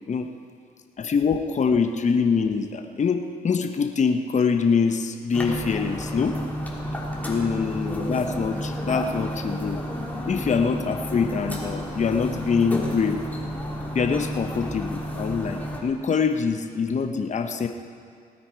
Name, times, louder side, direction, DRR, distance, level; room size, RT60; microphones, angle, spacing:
voice 1, 1.0-6.4 7.3-9.8 10.3-13.2 13.9-17.7, left 5 dB, 45° left, 6 dB, 0.9 m, -24 dB
sound 1, 5.3-15.8, equal, 10° left, 2.8 m, -31 dB
19.0 x 9.4 x 4.7 m, 2.2 s
supercardioid pair, 60°, 17 cm